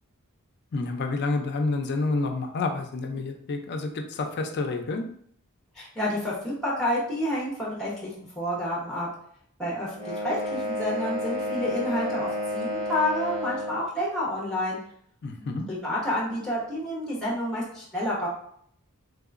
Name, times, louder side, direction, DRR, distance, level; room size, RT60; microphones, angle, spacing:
voice 1, 0.7-5.1 15.2-15.7, left 3 dB, 50° left, 5 dB, 0.4 m, -29 dB
voice 2, 5.7-9.1 9.6-14.8 15.4-18.3, left 1 dB, 5° left, -5 dB, 0.9 m, -29 dB
sound 1, 9.9-13.8, left 1 dB, 70° right, 1.3 m, -30 dB
3.2 x 2.8 x 2.4 m, 0.64 s
head